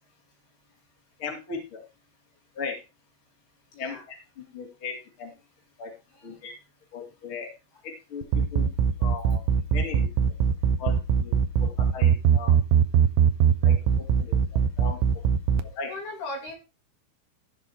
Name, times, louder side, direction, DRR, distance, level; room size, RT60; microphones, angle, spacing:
voice 1, 1.2-1.8 2.5-2.7 3.8-5.3 5.8-5.9 6.2-6.5 6.9-7.5 7.8-8.7 9.0-9.4 9.7-10.1 10.8-12.5 13.6-13.7 14.2-15.0 15.6-15.9, left 5 dB, 30° left, 0 dB, 2.9 m, -37 dB
sound 1, 8.2-15.6, right 8 dB, 90° right, 2.5 m, -20 dB
voice 2, 15.8-16.5, left 2 dB, 50° left, 0 dB, 4.7 m, -37 dB
15.5 x 5.9 x 4.9 m, 0.30 s
omnidirectional pair, 5.9 m